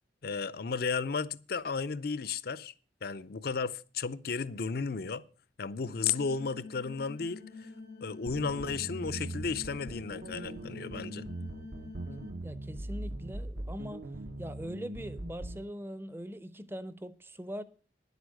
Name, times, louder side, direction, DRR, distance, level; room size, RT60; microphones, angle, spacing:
voice 1, 0.2-2.7 3.0-5.2 5.6-7.7 8.0-11.2, left 5 dB, 55° left, 0.6 m, -34 dB
sound 1, 5.8-12.3, left 4 dB, 85° left, 1.9 m, -47 dB
sound 2, 8.3-15.6, right 2 dB, 55° right, 0.8 m, -41 dB
voice 2, 12.4-14.1 14.4-17.6, equal, 15° right, 0.7 m, -41 dB
10.5 x 8.2 x 6.4 m
head